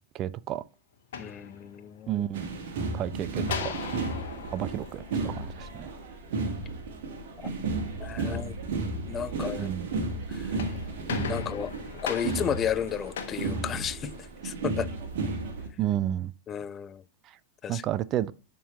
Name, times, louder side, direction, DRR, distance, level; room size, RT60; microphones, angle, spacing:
voice 1, 0.1-0.6 2.1-2.5 2.9-3.7 4.5-5.9 9.6-9.9 15.8-16.3 17.2-17.4 17.7-18.3, right 12 dB, 35° right, 0.4 m, -31 dB
sound 1, 0.9-2.1 3.4-5.9 10.3-14.4, left 7 dB, 60° left, 1.2 m, -39 dB
voice 2, 1.2-2.1 7.4-7.5 8.0-8.6 9.0-9.8 10.3-10.6 11.3-11.7 12.0-14.1 14.4-14.9 16.5-17.0 17.6-17.8, left 8 dB, 25° left, 0.4 m, -33 dB
sound 2, 2.3-15.7, right 3 dB, 55° right, 1.5 m, -33 dB
11.0 x 3.8 x 3.0 m
figure-of-eight pair, 90°, 0 cm